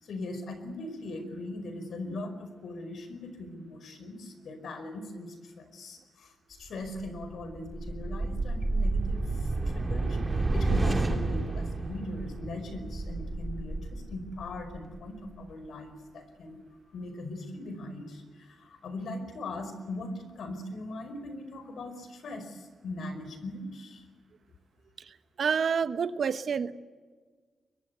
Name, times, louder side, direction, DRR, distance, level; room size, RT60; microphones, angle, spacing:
voice 1, 0.0-16.6 16.9-24.0, left 2 dB, 75° left, 9 dB, 5.0 m, -40 dB
sound 1, 6.8-15.3, right 2 dB, 20° right, 2.4 m, -31 dB
voice 2, 25.4-26.7, right 6 dB, 55° right, 11 dB, 1.1 m, -28 dB
24.5 x 22.5 x 8.1 m, 1.5 s
wide cardioid pair, 150°, 0 cm